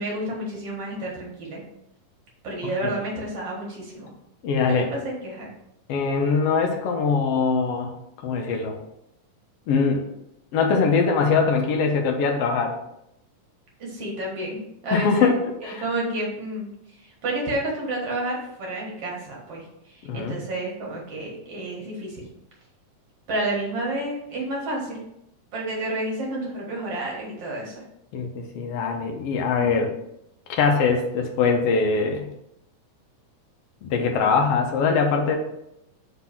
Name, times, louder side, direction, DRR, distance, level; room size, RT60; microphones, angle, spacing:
voice 1, 0.0-1.6 2.4-4.1 4.7-5.5 13.8-15.3 15.6-16.7 17.0-22.2 23.3-25.1 25.5-27.8 29.6-29.9, right 1 dB, 55° right, -2 dB, 2.3 m, -30 dB
voice 2, 4.4-5.0 5.9-7.9 8.2-8.8 9.7-10.1 10.5-12.8 14.9-15.8 20.0-20.4 28.1-29.9 30.5-32.3 33.8-35.4, left 5 dB, 70° left, 2 dB, 1.5 m, -22 dB
5.0 x 4.0 x 5.7 m, 0.81 s
omnidirectional pair, 3.6 m